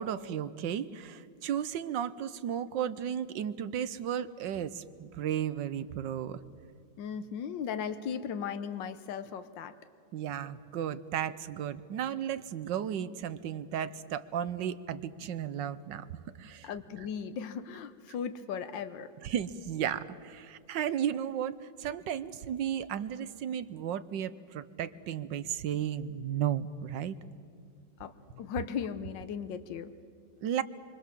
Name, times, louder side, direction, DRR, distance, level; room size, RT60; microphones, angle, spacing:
voice 1, 0.0-6.4 10.1-16.1 16.4-16.7 19.2-27.1 30.4-30.6, right 9 dB, 85° right, 14 dB, 1.6 m, -34 dB
voice 2, 7.0-9.7 16.6-19.1 28.0-29.9, left 7 dB, 85° left, 11 dB, 1.6 m, -37 dB
27.0 x 25.0 x 7.5 m, 2.3 s
omnidirectional pair, 1.9 m